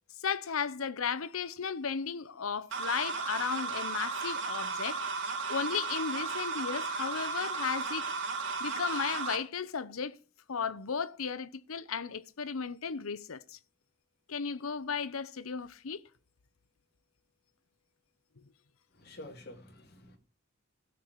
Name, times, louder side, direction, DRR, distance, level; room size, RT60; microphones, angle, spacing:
voice 1, 0.2-8.1 8.6-10.2 10.5-13.6 14.3-16.0, left 6 dB, 90° left, 0.7 m, -35 dB
sound 1, 2.7-9.4, right 4 dB, 60° right, 2.1 m, -35 dB
voice 2, 19.0-20.2, left 1 dB, 50° left, 2.5 m, -48 dB
12.5 x 4.7 x 8.2 m
head